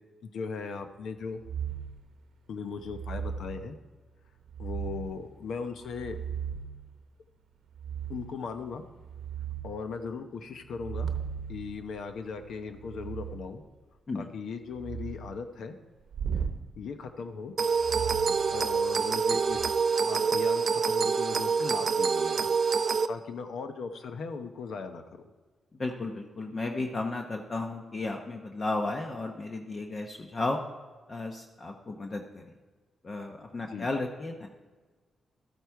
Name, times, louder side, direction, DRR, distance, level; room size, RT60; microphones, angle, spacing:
voice 1, 0.2-1.4 2.5-3.8 4.6-6.2 8.1-8.8 9.6-11.1 11.5-13.6 14.1-15.8 16.8-17.5 18.5-22.5 23.1-25.2 33.7-33.9, left 5 dB, 75° left, 7 dB, 0.8 m, -38 dB
sound 1, 1.4-2.0 2.8-3.6 4.5-5.2 5.8-6.8 7.7-8.4 8.8-9.7 10.7-13.4 14.7-15.3 16.1-16.6 17.8-19.0 19.4-19.7, right 7 dB, 80° right, 0.9 m, -37 dB
sound 2, 17.6-23.1, right 5 dB, 50° right, 0.4 m, -26 dB
voice 2, 25.7-30.6 31.1-32.4 33.0-34.5, left 2 dB, 35° left, 2 dB, 0.9 m, -34 dB
13.0 x 8.1 x 4.6 m, 1.4 s
cardioid pair, 105°, 0 cm